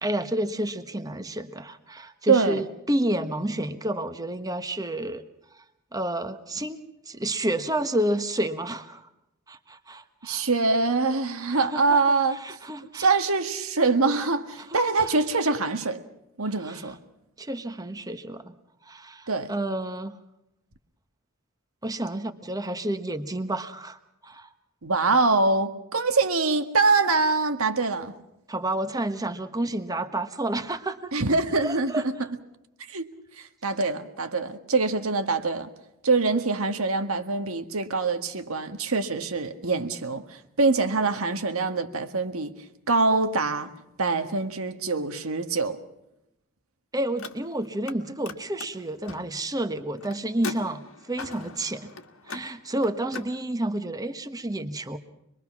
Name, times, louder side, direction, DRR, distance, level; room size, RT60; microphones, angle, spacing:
voice 1, 0.0-5.2 5.9-9.0 9.5-10.5 11.5-13.1 14.7-14.8 16.7-16.8 17.4-18.5 18.8-20.2 21.8-24.5 28.5-31.1 31.6-32.0 46.9-50.8 51.1-51.9 52.3-55.0, right 1 dB, 15° right, 1.2 m, -30 dB
voice 2, 2.3-2.6 10.2-12.4 12.9-16.0 16.4-17.0 19.3-19.5 24.8-28.1 31.1-32.1 32.9-33.1 33.4-35.7 36.0-42.5 42.9-43.7 44.0-45.8, right 3 dB, 85° right, 1.7 m, -24 dB
Car, 47.1-48.0 48.2-53.3, left 4 dB, 70° left, 1.7 m, -41 dB
25.5 x 22.0 x 6.0 m
head